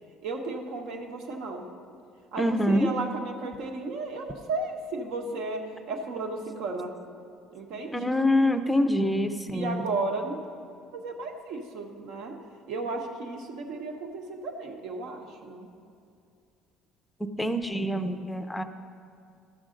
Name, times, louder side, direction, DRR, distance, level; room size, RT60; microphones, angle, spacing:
voice 1, 0.2-1.6 2.3-6.9 7.5-7.9 9.5-10.4 10.9-12.4 12.7-15.7, right 3 dB, 70° right, 3 dB, 1.1 m, -34 dB
voice 2, 2.4-2.9 7.9-9.9 17.4-18.6, left 1 dB, 5° left, 8 dB, 0.5 m, -25 dB
13.0 x 6.1 x 3.8 m, 2.4 s
cardioid pair, 130°, 0 cm